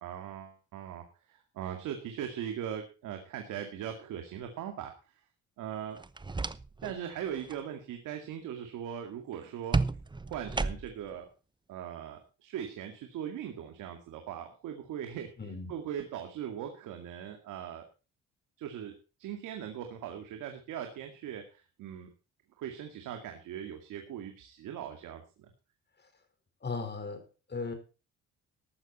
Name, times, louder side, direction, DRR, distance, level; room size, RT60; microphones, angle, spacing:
voice 1, 0.0-4.9 5.6-6.0 6.8-9.8 10.3-11.3 11.7-15.3 15.7-17.9 18.6-18.9 19.2-22.1 22.6-25.5, right 9 dB, 90° right, 4 dB, 2.3 m, -40 dB
sound 1, 6.0-7.0 7.3-7.6 9.7-11.1, right 3 dB, 15° right, 0.8 m, -32 dB
voice 2, 15.4-15.7 26.0-26.1 26.6-27.7, left 4 dB, 35° left, 8 dB, 4.8 m, -37 dB
14.5 x 12.0 x 4.3 m, 0.33 s
cardioid pair, 90°, 30 cm